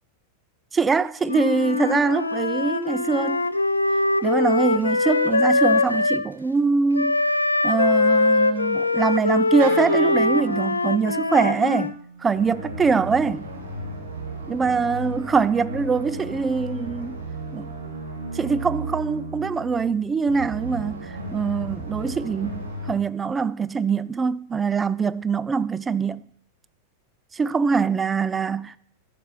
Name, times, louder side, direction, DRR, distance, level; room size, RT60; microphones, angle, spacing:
voice 1, 0.7-3.5 4.2-7.2 7.6-11.9 12.2-13.5 14.5-17.2 17.5-17.7 18.3-26.2 27.3-28.7, right 5 dB, 15° right, 0.4 m, -23 dB
Wind instrument woodwind instrument, 1.2-6.3 6.9-11.9, left 2 dB, 80° left, 0.5 m, -22 dB
Wind instrument woodwind instrument 2, 9.6-13.8, right 7 dB, 50° right, 1.3 m, -40 dB
sound 1, 12.3-22.9, right 1 dB, 80° right, 2.4 m, -34 dB
12.5 x 6.8 x 5.6 m
figure-of-eight pair, 90°, 0 cm